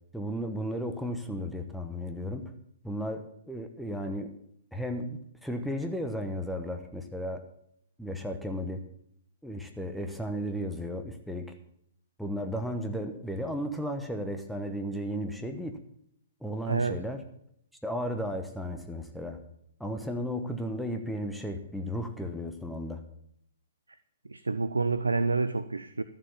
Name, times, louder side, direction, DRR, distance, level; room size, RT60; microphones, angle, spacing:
voice 1, 0.1-2.5 2.8-4.3 4.7-7.4 8.0-8.8 9.4-11.5 12.2-15.8 16.4-17.2 17.8-19.4 19.8-23.0, equal, ahead, 4 dB, 1.0 m, -34 dB
voice 2, 16.7-17.0 24.2-26.0, right 3 dB, 80° right, 13 dB, 0.6 m, -28 dB
13.0 x 7.5 x 7.0 m, 0.70 s
figure-of-eight pair, 120°, 0 cm